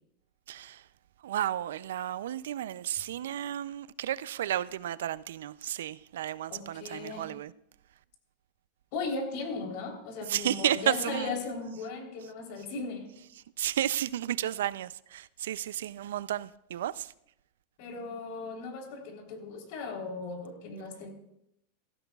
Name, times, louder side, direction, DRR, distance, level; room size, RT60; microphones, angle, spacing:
voice 1, 0.5-0.9 1.2-7.5 10.3-11.4 13.6-17.1, right 11 dB, 85° right, 0.4 m, -32 dB
voice 2, 6.5-7.3 8.9-13.1 17.8-21.1, left 4 dB, 60° left, 3.4 m, -37 dB
16.0 x 14.5 x 2.3 m
supercardioid pair, 140°, 0 cm